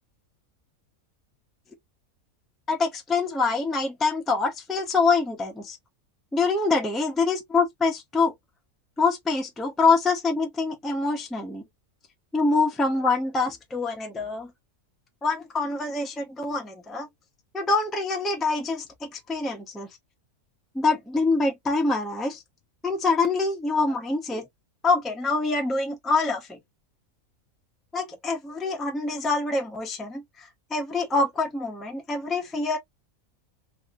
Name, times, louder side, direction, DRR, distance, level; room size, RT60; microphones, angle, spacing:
voice 1, 2.7-5.8 6.3-8.3 9.0-11.6 12.3-14.5 15.2-17.1 17.5-19.9 20.7-22.4 22.8-24.4 24.8-26.6 27.9-32.8, left 3 dB, ahead, 0.6 m, -25 dB
3.0 x 2.8 x 2.5 m
omnidirectional pair, 1.5 m